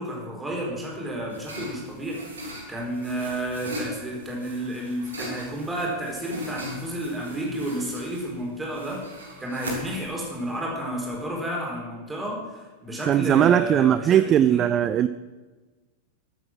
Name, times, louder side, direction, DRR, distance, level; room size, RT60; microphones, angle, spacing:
voice 1, 0.0-9.0 9.4-14.6, right 1 dB, 10° right, -2 dB, 4.5 m, -31 dB
sound 1, 0.7-11.3, equal, 75° right, 3.3 m, -39 dB
voice 2, 13.1-15.1, right 10 dB, 30° right, 14 dB, 0.4 m, -19 dB
14.5 x 9.1 x 6.2 m, 1.3 s
figure-of-eight pair, 90°, 0 cm